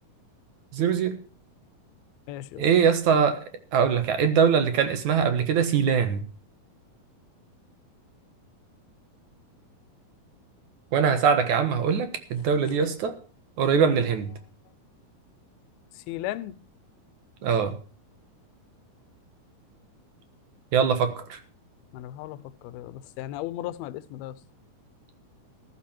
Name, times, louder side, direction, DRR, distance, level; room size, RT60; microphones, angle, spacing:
voice 1, 0.7-1.2 2.6-6.2 10.9-13.2 13.6-14.3 17.4-17.8 20.7-21.4, right 6 dB, 60° right, 2.6 m, -22 dB
voice 2, 2.3-2.6 12.7-12.8 13.8-13.9 16.1-16.6 21.9-22.4 22.6-24.4, left 14 dB, 90° left, 2.7 m, -35 dB
14.0 x 13.5 x 4.4 m
omnidirectional pair, 4.3 m